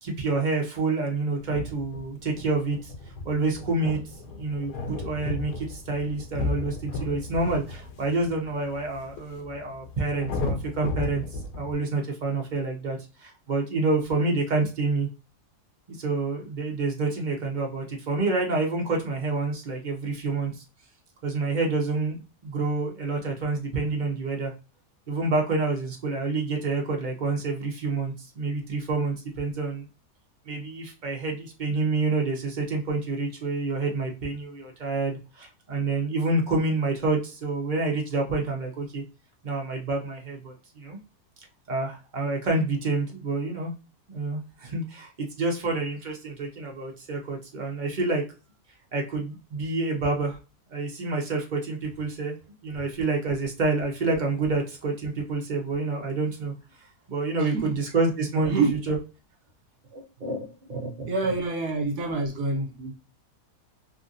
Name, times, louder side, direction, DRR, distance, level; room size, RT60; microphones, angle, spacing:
voice 1, 0.0-2.9 3.2-4.0 4.3-11.2 11.6-15.1 15.9-20.6 21.2-24.5 25.1-29.8 30.5-39.0 39.4-41.0 41.7-43.7 44.1-48.2 48.9-50.4 50.7-52.3 52.6-56.5 57.1-58.5 58.9-59.0 59.9-61.1, right 3 dB, 40° right, 0.7 m, -28 dB
sound 1, 1.4-11.7, left 3 dB, 85° left, 1.3 m, -35 dB
voice 2, 57.4-57.8 58.5-58.7 61.1-62.9, right 3 dB, 65° right, 1.4 m, -27 dB
3.3 x 2.6 x 2.5 m
omnidirectional pair, 1.7 m